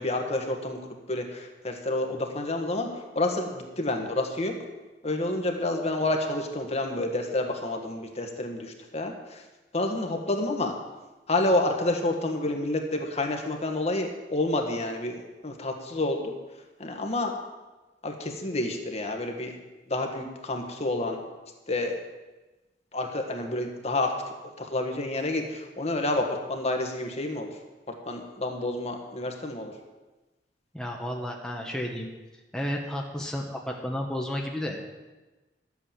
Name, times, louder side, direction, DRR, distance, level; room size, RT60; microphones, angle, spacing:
voice 1, 0.0-4.5 5.0-9.4 9.7-10.7 11.3-16.3 16.8-17.3 18.0-19.5 19.9-21.2 21.7-22.0 22.9-24.1 24.4-27.5 27.9-29.7, left 2 dB, 40° left, 3 dB, 1.6 m, -29 dB
voice 2, 30.7-32.1 32.5-34.9, equal, 5° left, 0 dB, 1.3 m, -32 dB
12.0 x 8.4 x 7.5 m, 1.2 s
head